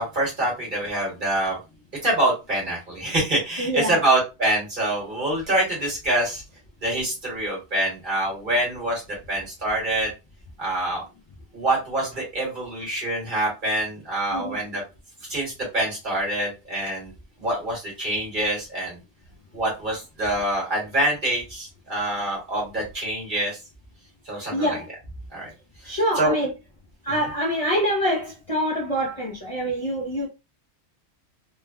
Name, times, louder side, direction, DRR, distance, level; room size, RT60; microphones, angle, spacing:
voice 1, 0.0-1.6 2.0-6.4 6.8-10.1 10.6-11.0 11.5-14.8 15.3-17.1 17.4-19.0 19.5-23.6 24.3-24.8 25.3-25.5 25.8-26.3 27.1-27.3, right 1 dB, 45° right, 1.3 m, -25 dB
voice 2, 3.6-4.0 14.3-14.6 24.5-24.9 25.9-26.5 27.0-30.3, equal, 35° left, 0.7 m, -25 dB
3.2 x 2.2 x 2.3 m
omnidirectional pair, 1.2 m